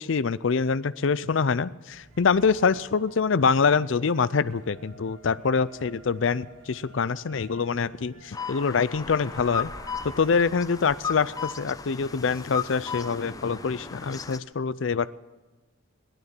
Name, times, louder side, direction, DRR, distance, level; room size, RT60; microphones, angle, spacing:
voice 1, 0.0-9.7 10.0-15.1, left 5 dB, 75° left, 17 dB, 0.5 m, -25 dB
sound 1, 1.9-11.7, right 2 dB, 70° right, 2.1 m, -52 dB
sound 2, 8.3-14.4, left 6 dB, 20° left, 0.6 m, -36 dB
17.5 x 12.0 x 6.1 m, 1.2 s
head